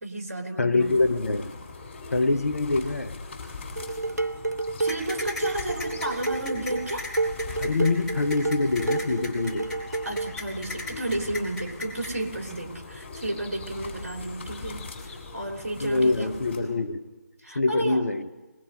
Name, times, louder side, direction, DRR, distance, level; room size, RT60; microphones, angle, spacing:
voice 1, 0.0-0.9 4.8-7.1 10.0-16.3 17.4-18.0, right 1 dB, 50° right, 2 dB, 3.3 m, -32 dB
voice 2, 0.6-1.6 2.1-3.2 7.6-9.7 15.8-17.0 17.5-18.3, left 3 dB, 55° left, 7 dB, 1.6 m, -24 dB
sound 1, 0.8-16.6, left 3 dB, 35° left, 7.3 m, -41 dB
Dishes pots and pans, 3.8-10.4, right 2 dB, 75° right, 0.8 m, -30 dB
sound 2, 4.9-12.1, left 2 dB, 5° left, 4.5 m, -36 dB
22.5 x 21.0 x 6.6 m, 1.2 s
figure-of-eight pair, 150°, 9 cm